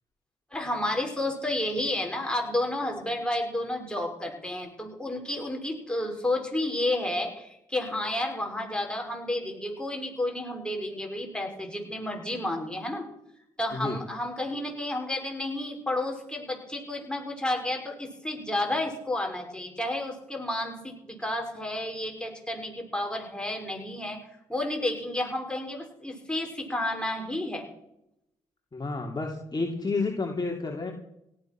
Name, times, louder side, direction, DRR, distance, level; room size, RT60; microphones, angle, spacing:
voice 1, 0.5-13.1 13.6-24.2 24.5-27.7, left 1 dB, 5° left, 1 dB, 6.0 m, -31 dB
voice 2, 28.7-30.9, left 3 dB, 30° left, 1 dB, 3.0 m, -30 dB
17.5 x 12.5 x 6.2 m, 0.81 s
supercardioid pair, 50°, 14 cm